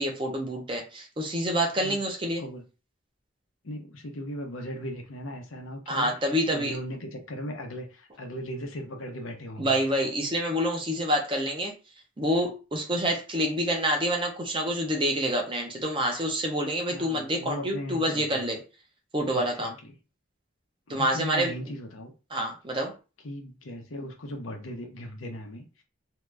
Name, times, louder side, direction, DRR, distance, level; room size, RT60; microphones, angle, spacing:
voice 1, 0.0-2.4 5.9-6.7 9.6-11.7 12.2-18.6 19.1-19.7 20.9-21.5 22.3-22.9, equal, 25° right, 2 dB, 0.7 m, -27 dB
voice 2, 3.6-6.1 6.5-9.8 16.9-18.5 19.3-19.9 20.9-22.1 23.2-25.8, equal, 85° left, 3 dB, 0.8 m, -38 dB
2.8 x 2.4 x 3.3 m, 0.32 s
head